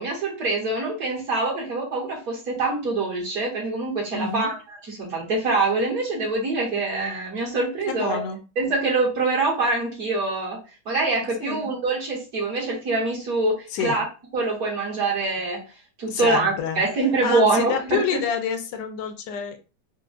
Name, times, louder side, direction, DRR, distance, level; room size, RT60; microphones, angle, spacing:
voice 1, 0.0-4.5 4.9-8.2 8.6-10.6 10.8-14.0 14.3-15.6 16.0-18.2, right 3 dB, 55° right, -3 dB, 1.5 m, -24 dB
voice 2, 4.1-4.5 7.9-8.4 11.4-11.7 13.7-14.0 16.1-16.8 17.2-19.6, left 6 dB, 75° left, 7 dB, 1.2 m, -28 dB
4.3 x 2.1 x 2.4 m, 0.33 s
omnidirectional pair, 1.9 m